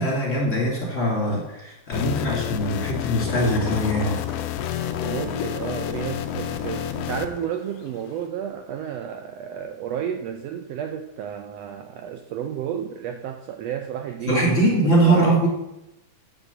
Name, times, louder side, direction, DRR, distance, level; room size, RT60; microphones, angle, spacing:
voice 1, 0.0-4.2 14.3-15.5, right 1 dB, 25° left, -3 dB, 2.5 m, -22 dB
sound 1, 1.9-7.3, left 10 dB, 85° left, 1.4 m, -29 dB
sound 2, 3.2-8.3, left 6 dB, 60° left, 1.3 m, -39 dB
voice 2, 5.0-15.5, right 9 dB, 90° right, 6 dB, 1.4 m, -32 dB
8.2 x 7.3 x 6.9 m, 0.94 s
omnidirectional pair, 3.6 m